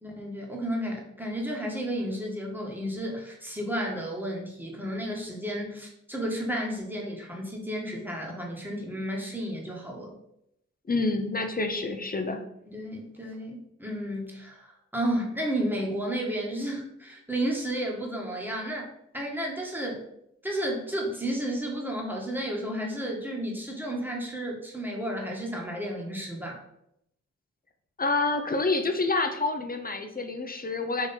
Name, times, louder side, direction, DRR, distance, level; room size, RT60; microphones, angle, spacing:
voice 1, 0.0-10.1 12.7-20.0 20.4-26.6, right 1 dB, 5° right, -1 dB, 1.5 m, -32 dB
voice 2, 10.9-12.4 28.0-31.1, left 3 dB, 30° left, 6 dB, 0.7 m, -28 dB
3.7 x 2.9 x 4.3 m, 0.76 s
supercardioid pair, 45°, 30 cm